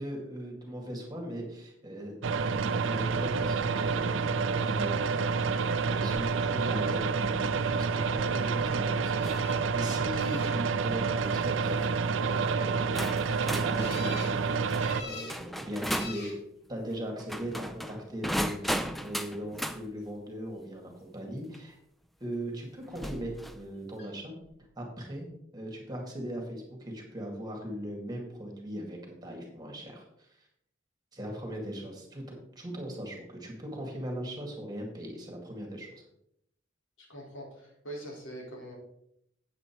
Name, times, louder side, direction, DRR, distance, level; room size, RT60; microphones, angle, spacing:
voice 1, 0.0-2.2 2.5-9.1 9.7-16.4 16.7-21.8 22.2-24.3 24.8-25.3 25.5-30.5 31.1-35.9, equal, 20° right, 1 dB, 2.1 m, -39 dB
sound 1, 2.2-15.0, right 5 dB, 75° right, 0.6 m, -28 dB
sound 2, 9.1-9.6 10.1-10.9 13.8-14.4 14.8-15.4 15.9-16.4 17.3-17.8 24.0-24.1 24.4-24.5, left 3 dB, 55° left, 2.5 m, -44 dB
sound 3, 9.2-9.5 10.0-10.4 11.2-11.5 12.3-12.4 13.0-16.2 17.2-19.8 21.5-21.6 22.9-23.6, equal, ahead, 0.4 m, -36 dB
voice 2, 37.0-38.7, right 1 dB, 85° left, -3 dB, 3.9 m, -43 dB
8.2 x 8.1 x 4.6 m, 0.76 s
head